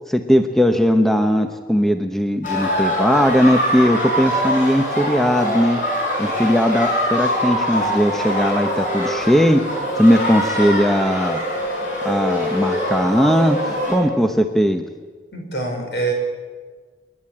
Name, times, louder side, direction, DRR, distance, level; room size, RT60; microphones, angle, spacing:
voice 1, 0.1-5.8 6.2-11.4 12.0-14.8, equal, ahead, 6 dB, 0.8 m, -18 dB
sound 1, 2.4-14.0, equal, 45° left, 6.6 m, -23 dB
voice 2, 15.3-16.1, right 3 dB, 70° left, 2 dB, 5.0 m, -24 dB
30.0 x 10.0 x 8.6 m, 1.5 s
head